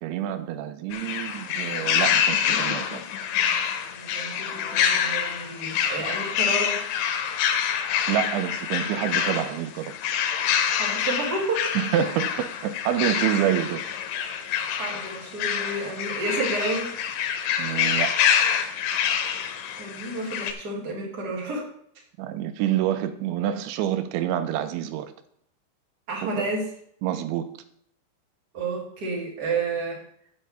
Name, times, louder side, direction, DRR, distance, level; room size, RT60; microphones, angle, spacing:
voice 1, 0.0-3.1 8.1-9.9 11.8-13.8 17.6-18.1 22.2-25.1 27.0-27.5, right 11 dB, 90° right, 3.0 m, -27 dB
sound 1, 0.9-20.5, left 8 dB, 90° left, 3.3 m, -26 dB
voice 2, 3.9-6.8 10.7-11.7 14.8-16.9 19.8-21.6 26.1-26.7 28.5-30.0, right 2 dB, 30° right, 2.1 m, -30 dB
8.6 x 5.5 x 7.7 m
omnidirectional pair, 5.3 m